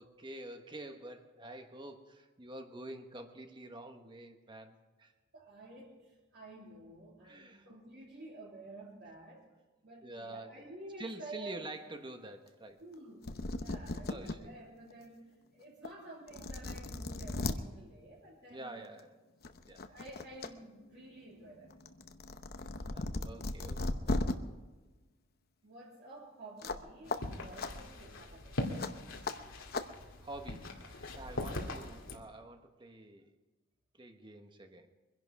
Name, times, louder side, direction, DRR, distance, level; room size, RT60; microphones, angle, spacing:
voice 1, 0.0-5.1 7.2-7.7 10.0-10.7 11.0-12.8 13.9-14.5 18.5-19.1 19.7-19.9 22.9-24.2 30.2-33.3 33.9-34.9, right 1 dB, 25° right, 6 dB, 1.3 m, -48 dB
voice 2, 5.3-9.4 9.8-11.6 12.8-15.3 15.5-18.9 19.8-21.7 25.6-28.6 31.3-31.4, right 2 dB, 55° right, -8 dB, 3.4 m, -51 dB
sound 1, 13.0-13.1 13.2-14.4 14.9-15.0 15.8-15.9 16.3-17.6 18.8-19.0 19.4-20.5 20.8-24.3 26.6-26.8 27.1-27.2 27.6-27.7 28.8-28.9 29.2-29.4 29.7-29.9, left 2 dB, 50° left, 0.9 m, -36 dB
sound 2, 27.0-32.2, left 1 dB, 90° left, 2.3 m, -41 dB
23.5 x 11.0 x 4.8 m, 1.2 s
head